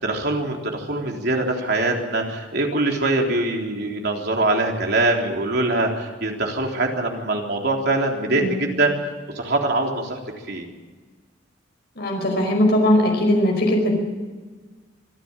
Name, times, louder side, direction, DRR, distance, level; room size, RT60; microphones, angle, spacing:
voice 1, 0.0-8.9 9.4-10.2 10.5-10.7, right 2 dB, 60° right, 1 dB, 3.7 m, -23 dB
voice 2, 11.9-13.9, left 1 dB, 60° left, 2 dB, 5.0 m, -19 dB
25.5 x 12.5 x 8.9 m, 1.4 s
head